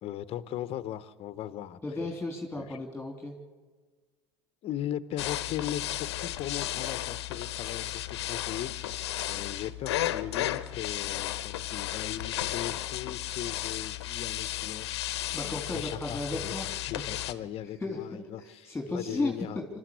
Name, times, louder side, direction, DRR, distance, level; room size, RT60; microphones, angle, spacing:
voice 1, 0.0-2.1 2.6-2.8 4.6-9.0 9.3-19.6, left 11 dB, 45° left, 15 dB, 1.0 m, -38 dB
voice 2, 1.8-3.3 15.3-16.6 17.2-17.3 17.8-19.6, left 2 dB, 10° left, 2 dB, 3.1 m, -34 dB
sound 1, 5.2-17.3, left 14 dB, 75° left, 1.0 m, -34 dB
25.0 x 13.0 x 8.3 m, 1.4 s
hypercardioid pair, 85°, 14 cm